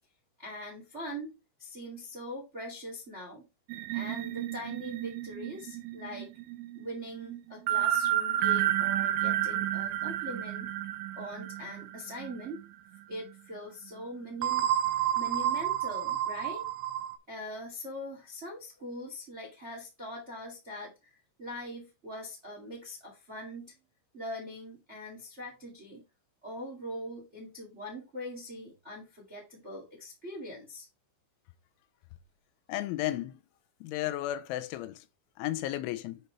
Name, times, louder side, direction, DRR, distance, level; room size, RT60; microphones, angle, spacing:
voice 1, 0.4-1.3 1.6-3.4 3.9-6.3 6.7-10.7 11.1-12.6 13.1-14.7 15.1-16.6 17.3-23.7 24.1-26.0 26.4-30.8, equal, 35° right, 1.0 m, -42 dB
sound 1, 3.7-12.6 13.0-13.2 14.4-17.2, right 12 dB, 85° right, 3.1 m, -31 dB
voice 2, 32.7-33.4 33.8-35.0 35.4-36.2, left 14 dB, 90° left, 3.1 m, -33 dB
7.9 x 5.4 x 3.2 m
omnidirectional pair, 5.4 m